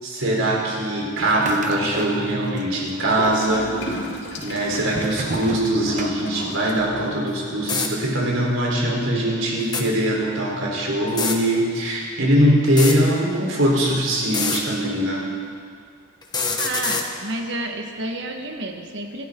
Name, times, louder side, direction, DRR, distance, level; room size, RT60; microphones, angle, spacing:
voice 1, 0.0-3.7 4.4-15.3, right 1 dB, 80° right, -3 dB, 4.2 m, -22 dB
sound 1, 1.2-2.6 2.9-3.6 4.2-6.7, right 2 dB, 40° right, 1.0 m, -34 dB
Gurgling / Toilet flush, 3.2-7.2, left 1 dB, 60° left, 2.7 m, -33 dB
sound 2, 7.3-7.4 7.6-7.9 9.6-9.8 11.1-11.4 12.6-13.0 14.2-14.6 16.2-17.1, left 5 dB, 20° left, 1.3 m, -24 dB
voice 2, 16.6-19.3, right 2 dB, 60° right, 3 dB, 1.7 m, -30 dB
27.0 x 12.5 x 3.9 m, 2.2 s
head